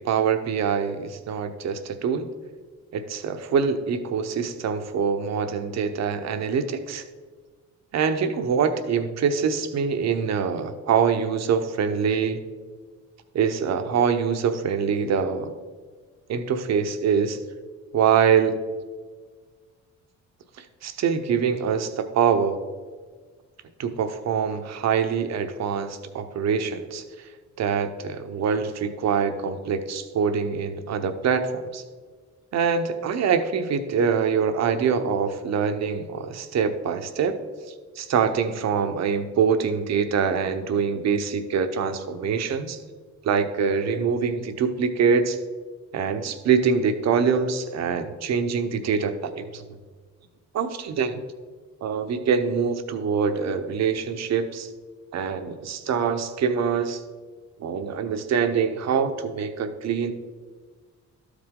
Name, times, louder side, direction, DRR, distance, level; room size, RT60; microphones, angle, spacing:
voice 1, 0.0-2.3 2.9-7.0 7.9-12.4 13.3-15.5 16.3-17.4 17.9-18.6 20.6-22.6 23.8-27.0 27.6-31.8 32.5-37.3 38.0-42.8 43.2-45.4 45.9-49.6 50.5-51.2 51.8-54.7 55.1-57.0 57.6-60.1, right 6 dB, 60° right, 9 dB, 0.8 m, -24 dB
12.0 x 4.9 x 3.7 m, 1.5 s
cardioid pair, 90°, 30 cm